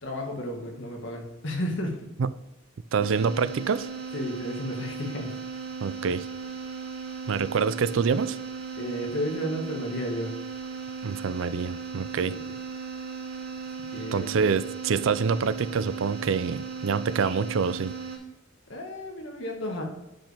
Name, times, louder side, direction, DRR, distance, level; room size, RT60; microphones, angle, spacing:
voice 1, 0.0-2.0 4.1-5.4 8.8-10.3 12.2-12.4 13.9-14.4 18.7-19.8, equal, 60° left, 1 dB, 1.7 m, -32 dB
voice 2, 2.9-3.9 5.8-6.3 7.3-8.4 11.0-12.4 14.1-17.9, right 5 dB, 65° right, 14 dB, 0.4 m, -26 dB
sound 1, 3.0-18.2, right 5 dB, 85° right, 2.8 m, -37 dB
8.8 x 5.3 x 3.4 m, 0.96 s
head